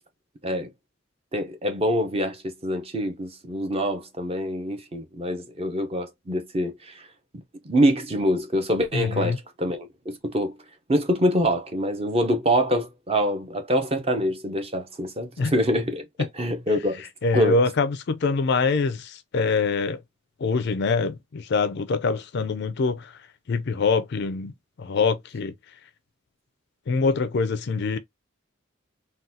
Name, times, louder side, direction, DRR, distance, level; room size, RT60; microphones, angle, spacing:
voice 1, 1.3-7.0 7.3-10.5 10.9-17.0 17.3-17.6, equal, 30° right, 0.6 m, -25 dB
voice 2, 8.9-9.4 15.4-15.5 17.2-20.0 20.4-23.1 23.5-24.5 24.8-25.5 26.9-28.0, left 4 dB, 55° left, 0.4 m, -24 dB
3.8 x 2.3 x 2.6 m
head